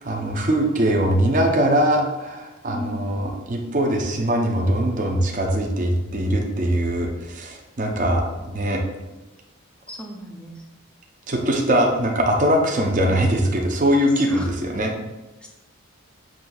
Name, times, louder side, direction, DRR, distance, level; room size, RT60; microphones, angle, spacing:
voice 1, 0.0-8.8 11.3-14.9, right 1 dB, 35° right, 1 dB, 0.6 m, -21 dB
voice 2, 2.7-3.1 9.9-10.6 14.3-14.5 15.4-15.5, equal, 5° left, -1 dB, 0.5 m, -35 dB
7.3 x 2.6 x 2.3 m, 1.1 s
head